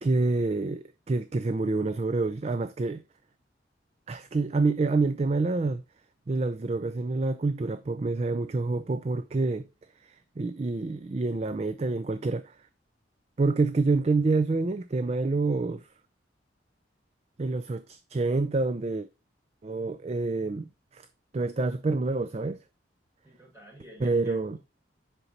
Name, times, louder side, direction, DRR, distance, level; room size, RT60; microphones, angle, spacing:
voice 1, 0.0-3.0 4.1-5.8 6.3-9.7 10.0-12.6 13.4-15.8 17.4-19.1 19.6-21.1 21.3-22.6 24.0-24.6, right 3 dB, 35° right, 0.4 m, -27 dB
voice 2, 23.2-24.6, equal, 15° right, 4.5 m, -50 dB
8.0 x 6.0 x 2.7 m
head